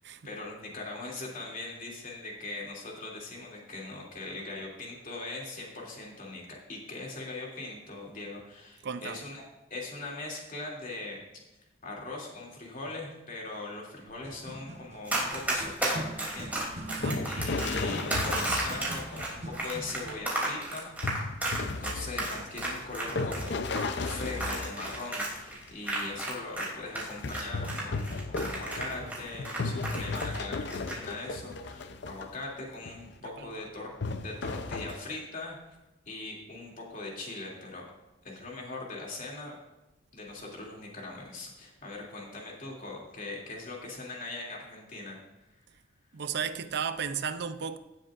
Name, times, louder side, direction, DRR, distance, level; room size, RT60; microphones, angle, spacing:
voice 1, 0.2-9.4 9.7-11.2 11.8-16.8 17.2-20.9 21.6-33.9 34.2-35.6 36.1-37.8 38.2-39.5 40.1-45.2, left 2 dB, 45° left, 2.8 m, -41 dB
voice 2, 8.8-9.2 16.9-17.3 33.4-33.5 46.1-47.8, right 6 dB, 60° right, 0.6 m, -34 dB
sound 1, 14.1-20.3, right 1 dB, 40° right, 1.0 m, -43 dB
Run, 15.1-26.7 26.9-30.4 30.7-31.0, right 1 dB, 10° right, 3.0 m, -33 dB
sound 2, 16.6-19.5 21.0-25.7 27.2-32.4 32.8-33.1 34.0-35.0, left 3 dB, 65° left, 0.6 m, -35 dB
17.0 x 7.6 x 2.5 m
head